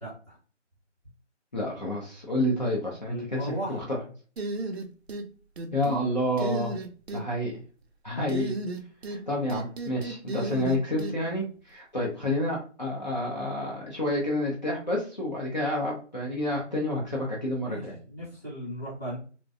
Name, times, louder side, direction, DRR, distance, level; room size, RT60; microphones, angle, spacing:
voice 1, 0.0-0.4 3.1-3.8 8.1-8.2 17.6-19.2, right 1 dB, ahead, -19 dB, 0.9 m, -36 dB
voice 2, 1.5-4.0 5.7-6.7 7.1-7.6 8.0-8.6 9.1-18.0, left 1 dB, 40° left, -4 dB, 0.5 m, -29 dB
sound 1, 4.4-5.3 5.6-6.0 6.4-7.2 8.3-9.2 9.5-11.1, right 2 dB, 60° right, 0.5 m, -33 dB
2.6 x 2.1 x 2.3 m, 0.39 s
figure-of-eight pair, 160°, 36 cm